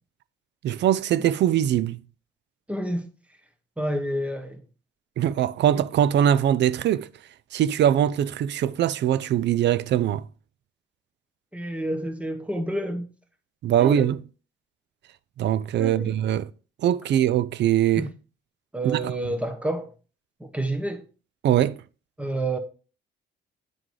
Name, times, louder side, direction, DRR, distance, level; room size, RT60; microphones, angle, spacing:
voice 1, 0.6-2.0 5.2-7.1 7.5-10.2 13.6-14.2 15.4-16.5 16.8-18.1 18.8-19.1 21.4-21.8, right 10 dB, 65° right, 0.5 m, -22 dB
voice 2, 2.7-3.1 3.8-4.6 11.5-13.1 13.8-14.1 15.8-16.2 18.0-18.1 18.7-19.9 20.4-21.0 22.2-22.6, right 1 dB, 5° right, 1.2 m, -29 dB
9.5 x 3.8 x 4.7 m
cardioid pair, 90°, 20 cm